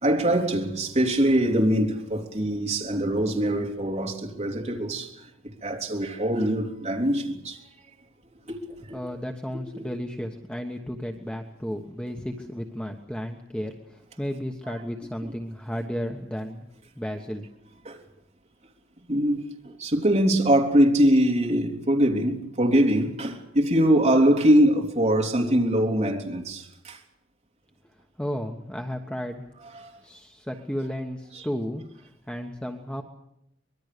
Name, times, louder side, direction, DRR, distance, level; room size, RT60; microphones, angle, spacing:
voice 1, 0.0-7.6 8.5-9.0 9.7-9.8 14.7-14.8 17.8-18.0 19.1-27.0 29.7-29.9 31.3-31.4, right 1 dB, 35° right, 3.2 m, -23 dB
voice 2, 8.9-16.7 17.0-17.5 28.2-29.5 30.0-33.0, equal, 5° left, 1.3 m, -33 dB
24.5 x 22.0 x 6.8 m
head